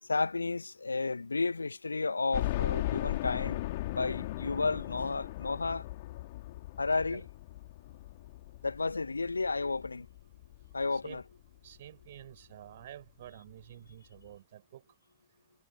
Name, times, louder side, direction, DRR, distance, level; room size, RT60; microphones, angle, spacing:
voice 1, 0.0-3.6 3.9-5.8 6.8-7.3 8.6-10.1 10.7-11.2, left 3 dB, 80° left, 1.7 m, -32 dB
sound 1, 2.3-11.2 11.7-11.8 12.2-12.3 13.5-13.6 13.9-14.0, left 17 dB, 55° left, 3.3 m, -37 dB
voice 2, 10.9-11.2 11.6-14.8, right 12 dB, 60° right, 6.9 m, -50 dB
figure-of-eight pair, 90°, 0 cm